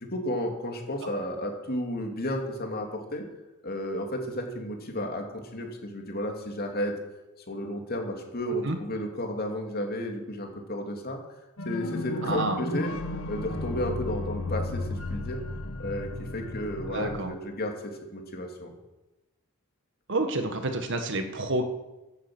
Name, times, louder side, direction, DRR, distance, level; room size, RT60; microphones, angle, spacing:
voice 1, 0.1-3.2 3.6-6.9 7.5-11.2 11.6-12.9 13.3-15.4 15.8-18.7, left 1 dB, 45° left, 2 dB, 2.7 m, -33 dB
sound 1, 11.6-17.2, left 2 dB, 75° left, 1.7 m, -34 dB
voice 2, 12.2-12.6 16.9-17.3 20.1-21.6, right 2 dB, 60° right, 6 dB, 1.7 m, -29 dB
16.0 x 9.9 x 6.2 m, 1.1 s
head